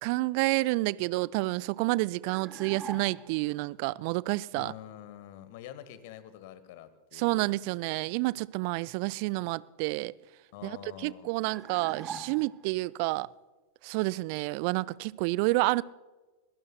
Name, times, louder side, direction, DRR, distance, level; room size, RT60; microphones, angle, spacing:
voice 1, 0.0-4.7 7.1-10.1 10.6-13.3 13.8-15.8, right 21 dB, 45° right, 0.3 m, -29 dB
sound 1, 2.3-3.5 11.5-12.8, right 6 dB, 20° right, 1.0 m, -43 dB
voice 2, 4.5-7.4 10.5-11.3, left 11 dB, 50° left, 1.2 m, -46 dB
23.0 x 17.5 x 2.2 m
figure-of-eight pair, 90°, 0 cm